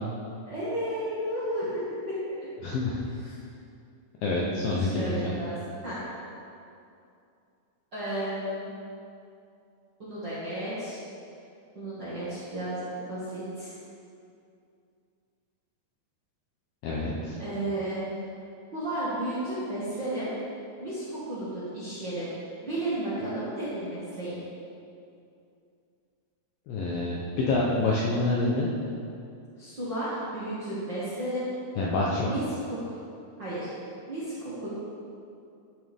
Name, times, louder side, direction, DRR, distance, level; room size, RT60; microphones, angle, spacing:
voice 1, 0.5-1.7 2.1-2.2 3.2-3.3 4.8-5.5 5.8-6.0 7.9-8.7 10.0-11.0 11.7-13.7 17.4-18.0 18.7-20.3 20.8-22.3 22.6-24.4 29.6-31.5 32.2-32.9 33.4-33.7 34.1-34.7, right 1 dB, 40° right, -12 dB, 1.7 m, -33 dB
voice 2, 2.6-3.0 4.2-5.3 16.8-17.4 26.7-28.7 31.8-32.3, left 2 dB, 75° left, -4 dB, 2.2 m, -27 dB
13.0 x 6.7 x 3.5 m, 2.5 s
omnidirectional pair, 5.0 m